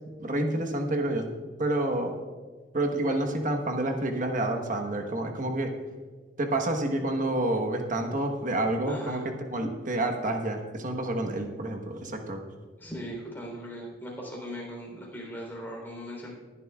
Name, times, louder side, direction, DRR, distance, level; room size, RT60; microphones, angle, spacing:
voice 1, 0.2-1.3 1.6-2.2 2.7-5.7 6.4-12.4, right 1 dB, 45° right, 4 dB, 1.2 m, -28 dB
voice 2, 8.9-9.3 12.8-16.3, equal, 10° left, -2 dB, 3.5 m, -38 dB
19.5 x 11.0 x 2.4 m, 1.4 s
head